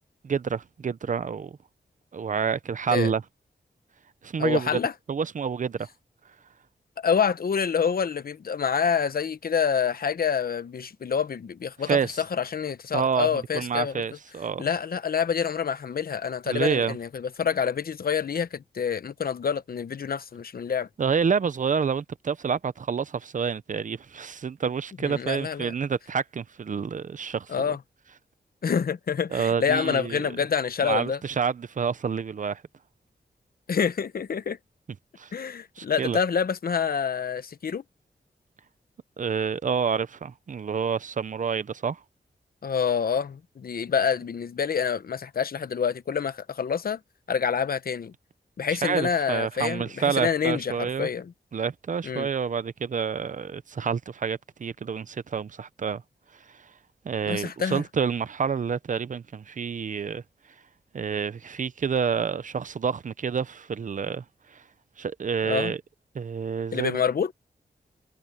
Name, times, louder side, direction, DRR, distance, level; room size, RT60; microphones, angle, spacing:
voice 1, 0.2-1.6 2.1-3.2 4.2-4.8 5.1-5.9 11.9-12.2 12.9-14.7 16.5-17.0 21.0-27.7 29.3-30.3 30.8-32.6 35.2-35.3 35.8-36.2 39.2-42.0 48.7-51.1 51.5-56.0 57.0-60.2 60.9-64.2 64.5-64.6 65.0-65.8 66.1-67.0, right 6 dB, 50° right, 0.7 m, -28 dB
voice 2, 4.4-4.9 7.0-14.0 14.6-20.9 25.0-25.7 27.5-27.8 28.6-31.2 33.7-34.6 35.3-37.8 42.6-47.0 47.3-48.1 48.6-51.3 52.0-52.3 57.3-57.8 65.4-65.7 66.7-67.3, left 7 dB, 60° left, 0.9 m, -27 dB
wide cardioid pair, 135°, 17 cm